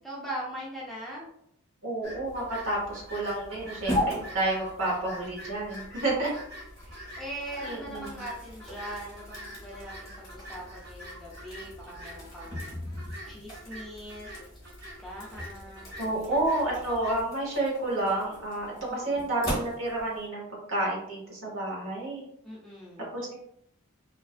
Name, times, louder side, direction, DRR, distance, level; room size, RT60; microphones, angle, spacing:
voice 1, 0.0-1.3 6.8-12.7 13.2-14.5 15.0-16.8 18.9-19.2 22.4-23.1, right 1 dB, ahead, -6 dB, 0.4 m, -41 dB
voice 2, 1.8-6.3 7.1-7.2 7.6-8.2 16.0-22.3 23.1-23.4, right 2 dB, 70° right, -3 dB, 0.9 m, -30 dB
sound 1, 2.0-17.2, equal, 45° right, 0.6 m, -45 dB
sound 2, 2.2-20.3, equal, 15° left, 0.9 m, -40 dB
2.4 x 2.3 x 2.3 m, 0.73 s
head